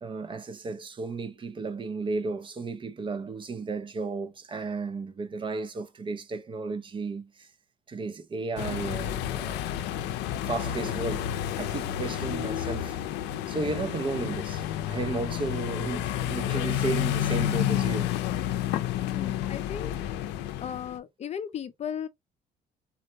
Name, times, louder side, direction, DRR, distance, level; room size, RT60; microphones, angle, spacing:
voice 1, 0.0-7.5 7.9-9.7 10.4-13.0 13.5-18.2 18.6-18.7, right 3 dB, 30° right, 0.5 m, -34 dB
sound 1, 8.6-21.0, left 12 dB, 90° left, 0.5 m, -30 dB
voice 2, 19.0-19.9 20.6-22.1, left 8 dB, 40° left, 0.5 m, -36 dB
3.9 x 2.1 x 2.7 m
cardioid pair, 110°, 17 cm